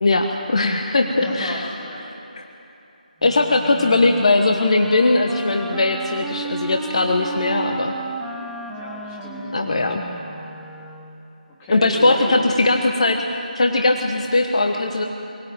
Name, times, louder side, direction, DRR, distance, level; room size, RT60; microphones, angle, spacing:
voice 1, 0.0-1.6 2.1-2.4 3.2-7.9 9.5-10.0 11.7-15.0, left 2 dB, 45° left, 4 dB, 1.3 m, -19 dB
voice 2, 1.0-2.1 3.6-3.7 8.7-9.5 11.5-12.4, left 1 dB, 10° left, -5 dB, 2.9 m, -34 dB
Wind instrument woodwind instrument, 3.2-11.3, right 3 dB, 5° right, 0.8 m, -34 dB
23.0 x 16.5 x 9.0 m, 2.9 s
figure-of-eight pair, 160°, 5 cm